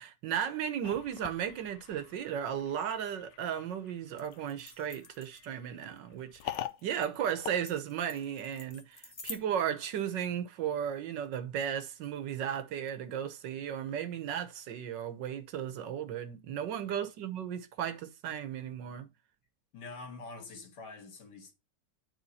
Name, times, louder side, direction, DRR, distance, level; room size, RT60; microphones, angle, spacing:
voice 1, 0.0-19.1, right 9 dB, 80° right, 1.6 m, -35 dB
sound 1, 0.8-8.5, left 11 dB, 90° left, 1.3 m, -46 dB
sound 2, 4.2-9.4, left 3 dB, 30° left, 0.7 m, -49 dB
voice 2, 16.7-17.1 19.7-21.5, left 3 dB, 70° left, 2.0 m, -46 dB
9.2 x 3.7 x 4.1 m
omnidirectional pair, 1.9 m